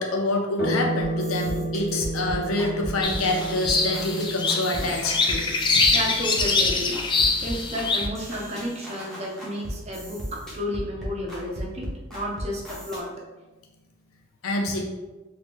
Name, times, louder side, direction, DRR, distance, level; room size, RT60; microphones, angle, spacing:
voice 1, 0.0-5.9 14.4-14.8, left 2 dB, 90° left, 1 dB, 0.7 m, -27 dB
sound 1, 0.6-9.4, right 2 dB, 45° left, 1.0 m, -34 dB
sound 2, 1.0-13.0, equal, ahead, 0.9 m, -36 dB
sound 3, 3.0-8.1, left 4 dB, 20° left, 0.3 m, -24 dB
voice 2, 5.7-7.0 7.4-13.2, equal, 30° right, -2 dB, 0.7 m, -32 dB
3.0 x 2.9 x 3.5 m, 1.1 s
head